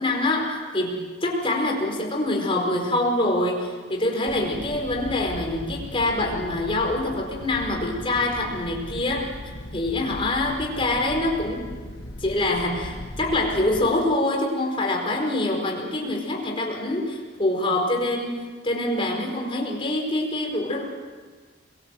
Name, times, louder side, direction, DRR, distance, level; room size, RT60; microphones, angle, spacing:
voice 1, 0.0-9.3 9.7-11.7 12.2-20.8, left 2 dB, 25° left, 0 dB, 4.8 m, -25 dB
sound 1, 4.3-14.0, left 1 dB, 60° left, 1.7 m, -38 dB
29.0 x 22.0 x 7.7 m, 1.5 s
head